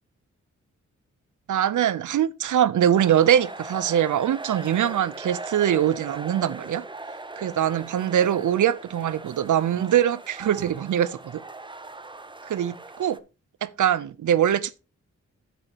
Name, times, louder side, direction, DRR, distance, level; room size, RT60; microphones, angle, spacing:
voice 1, 1.5-6.8 7.4-11.4 12.4-13.2 13.6-14.8, right 10 dB, 85° right, 0.7 m, -23 dB
sound 1, 2.9-13.2, right 2 dB, 15° right, 0.7 m, -40 dB
9.0 x 8.7 x 3.0 m
cardioid pair, 75°, 30 cm